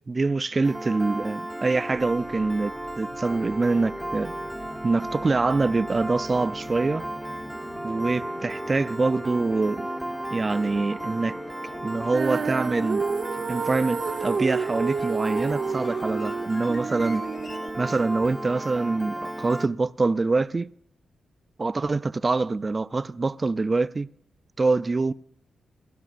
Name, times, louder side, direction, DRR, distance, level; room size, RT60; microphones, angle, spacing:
voice 1, 0.1-4.3 4.8-7.0 7.8-9.9 10.3-11.4 11.8-13.0 13.5-17.2 17.8-20.7 21.6-24.1 24.6-25.1, right 3 dB, 35° right, 0.5 m, -25 dB
Piano, 0.6-19.7, right 1 dB, 5° right, 0.8 m, -34 dB
sound 1, 1.8-17.7, left 3 dB, 45° left, 1.0 m, -45 dB
Female singing, 12.1-18.3, right 5 dB, 60° right, 0.8 m, -30 dB
27.5 x 12.5 x 2.5 m
cardioid pair, 80°, 0 cm